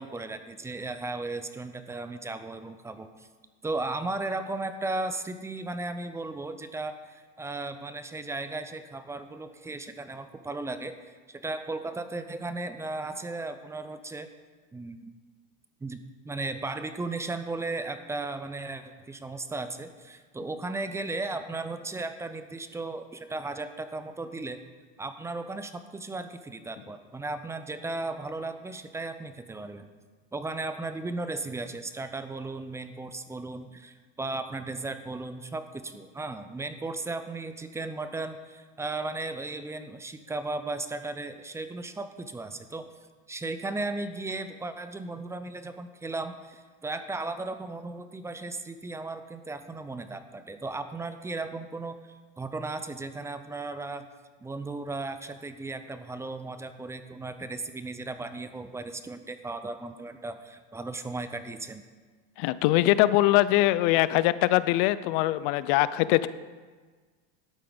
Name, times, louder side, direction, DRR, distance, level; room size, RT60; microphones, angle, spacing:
voice 1, 0.0-3.3 3.6-14.3 14.7-15.1 15.8-16.0 16.2-24.6 25.0-29.9 30.3-42.9 43.3-52.0 52.4-54.1 54.4-61.8, right 2 dB, 10° right, 10 dB, 0.5 m, -36 dB
voice 2, 62.4-66.3, left 16 dB, 60° left, 16 dB, 0.5 m, -22 dB
12.5 x 8.5 x 3.9 m, 1.4 s
supercardioid pair, 125°, 30 cm